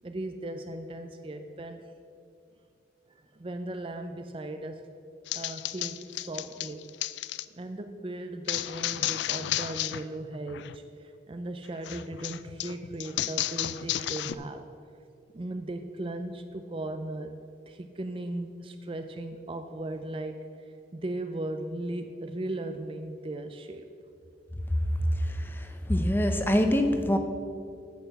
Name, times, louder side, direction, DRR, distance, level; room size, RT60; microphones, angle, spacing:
voice 1, 0.0-1.9 3.1-4.8 5.3-6.9 7.5-14.7 15.3-17.4 17.7-20.5 20.9-23.9, right 1 dB, 30° right, 7 dB, 0.4 m, -37 dB
sound 1, 5.3-7.4 8.5-10.0 10.3-10.8 11.8-14.3, left 14 dB, 70° left, 0.3 m, -33 dB
voice 2, 25.1-27.2, equal, 10° left, 5 dB, 0.7 m, -25 dB
9.2 x 6.6 x 6.8 m, 2.4 s
head